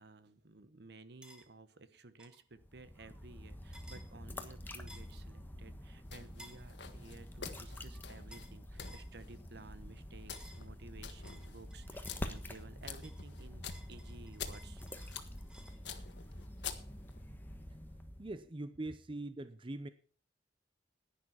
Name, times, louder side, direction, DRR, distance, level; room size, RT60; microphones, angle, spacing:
voice 1, 0.0-14.8, right 3 dB, 65° right, 1.1 m, -55 dB
sound 1, 1.2-1.5 2.2-2.4 3.7-4.1 4.9-5.2 6.4-6.6 8.3-8.5 8.8-9.1 10.3-10.7 11.2-12.6 13.0-15.8, equal, 5° right, 1.8 m, -57 dB
sound 2, 2.5-18.4, equal, 10° left, 1.3 m, -47 dB
sound 3, 6.1-17.2, left 7 dB, 70° left, 1.5 m, -49 dB
voice 2, 18.2-19.9, right 2 dB, 30° right, 0.7 m, -42 dB
11.0 x 10.5 x 5.7 m
head